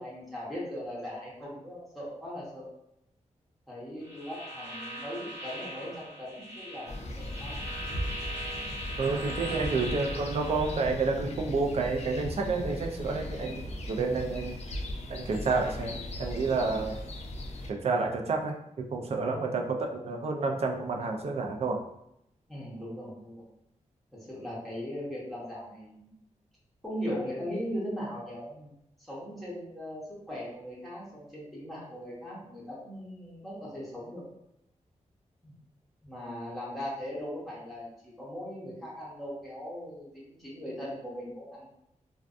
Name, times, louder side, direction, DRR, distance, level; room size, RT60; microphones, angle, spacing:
voice 1, 0.0-2.7 3.7-7.6 9.4-9.7 22.5-23.4 24.3-26.1 26.8-28.7 29.0-34.2 35.4-35.5 36.0-41.7, equal, ahead, -7 dB, 0.7 m, -39 dB
sound 1, 4.0-10.8, equal, 20° right, 1.0 m, -40 dB
sound 2, 6.9-17.7, left 1 dB, 60° left, 0.4 m, -38 dB
voice 2, 9.0-14.5 15.1-17.0 17.7-21.8, right 3 dB, 55° right, 2 dB, 0.4 m, -30 dB
2.5 x 2.2 x 2.4 m, 0.81 s
wide cardioid pair, 120°, 13 cm